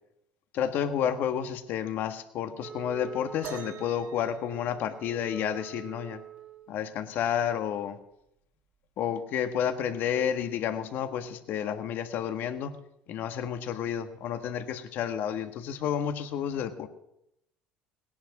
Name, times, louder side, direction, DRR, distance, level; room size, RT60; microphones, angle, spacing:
voice 1, 0.5-6.2 6.7-8.0 9.0-12.7 13.1-16.9, left 9 dB, 60° left, 8 dB, 1.5 m, -30 dB
Wind instrument woodwind instrument, 2.6-6.7, right 8 dB, 30° right, 1.6 m, -46 dB
sound 1, 3.4-5.3 7.0-7.1 7.9-8.1 9.0-9.1, right 7 dB, 70° right, 3.1 m, -45 dB
17.5 x 10.5 x 5.9 m, 0.81 s
supercardioid pair, 95°, 4 cm